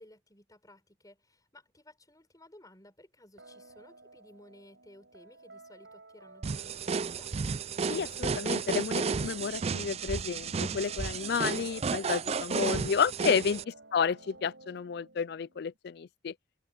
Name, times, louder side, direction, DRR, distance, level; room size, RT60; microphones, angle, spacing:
voice 1, 0.0-7.4 12.7-13.7, left 1 dB, 20° left, 5.0 m, -57 dB
sound 1, 3.4-15.8, right 2 dB, 85° right, 6.5 m, -54 dB
sound 2, 6.4-13.6, right 5 dB, 35° right, 0.4 m, -32 dB
voice 2, 7.9-13.6 13.9-16.3, left 6 dB, 60° left, 0.4 m, -31 dB
head